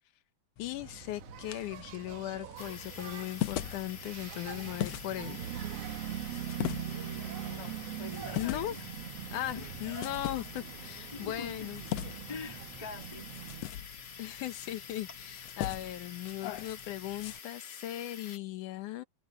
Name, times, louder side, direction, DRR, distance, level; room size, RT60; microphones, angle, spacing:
voice 1, 0.6-5.4 8.4-8.7 9.3-11.8 14.2-19.0, left 14 dB, 85° left, 2.5 m, -38 dB
sound 1, 0.6-17.4, left 13 dB, 70° left, 1.7 m, -42 dB
Engine, 0.7-13.7, right 11 dB, 70° right, 1.7 m, -42 dB
sound 2, 2.6-18.4, left 6 dB, 40° left, 2.3 m, -48 dB
voice 2, 6.9-8.9 9.5-9.9 11.1-11.7 12.3-13.3, left 5 dB, 15° left, 1.4 m, -45 dB
omnidirectional pair, 3.5 m